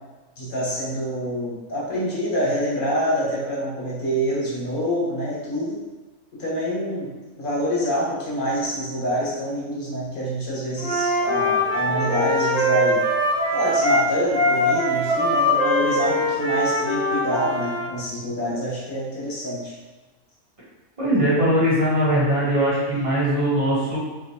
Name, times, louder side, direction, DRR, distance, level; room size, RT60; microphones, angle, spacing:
voice 1, 0.4-5.8 6.4-7.1 7.4-13.0 13.5-19.7, equal, 35° left, -7 dB, 1.3 m, -26 dB
Wind instrument woodwind instrument, 10.8-17.8, left 1 dB, 60° right, 1.5 m, -22 dB
voice 2, 21.0-24.0, right 1 dB, 25° right, -9 dB, 1.4 m, -20 dB
5.0 x 2.7 x 2.8 m, 1.2 s
omnidirectional pair, 1.6 m